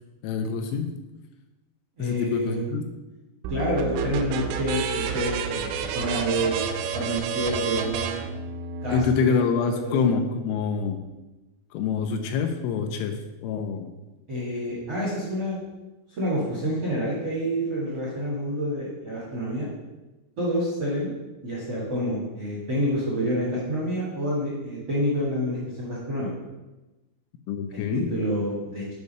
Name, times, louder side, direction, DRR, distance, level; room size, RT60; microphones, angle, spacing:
voice 1, 0.2-0.9 2.0-2.9 8.9-11.0 11.7-13.9 27.5-28.1, left 5 dB, 80° left, 6 dB, 3.0 m, -26 dB
voice 2, 2.0-2.6 3.5-6.6 6.9-8.2 8.8-9.3 9.5-9.9 14.3-15.6 16.1-19.7 20.4-21.1 21.4-26.3 27.7-28.9, equal, 60° right, -6 dB, 1.5 m, -28 dB
sound 1, 3.4-9.1, right 6 dB, 80° right, 3.0 m, -30 dB
8.3 x 4.7 x 5.4 m, 1.1 s
omnidirectional pair, 5.8 m